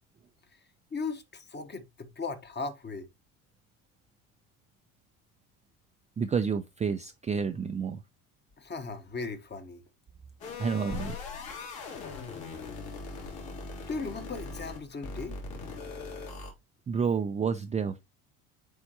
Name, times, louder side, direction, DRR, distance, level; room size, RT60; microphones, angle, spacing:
voice 1, 0.9-3.1 8.6-9.8 13.8-15.4, left 4 dB, 25° left, 1.3 m, -37 dB
voice 2, 6.2-8.0 10.6-11.2 16.9-18.0, right 6 dB, 15° right, 0.5 m, -29 dB
sound 1, 10.4-16.5, left 4 dB, 55° left, 3.1 m, -40 dB
8.2 x 4.4 x 2.9 m
hypercardioid pair, 75°, 43 cm